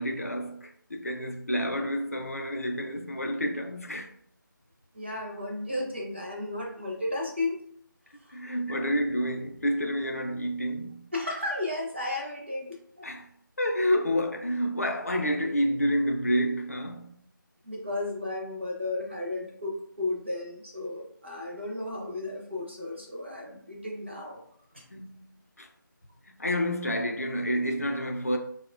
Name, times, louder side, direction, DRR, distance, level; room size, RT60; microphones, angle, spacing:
voice 1, 0.0-4.1 8.3-11.1 13.0-13.3 13.6-17.2 24.9-25.2 25.6-25.7 26.4-28.4, equal, 45° left, 0.3 m, -29 dB
voice 2, 4.9-7.6 8.2-8.4 11.1-13.1 17.6-24.4 24.7-24.8, left 2 dB, 35° right, 0.5 m, -34 dB
3.7 x 2.0 x 2.3 m
figure-of-eight pair, 175°, 11 cm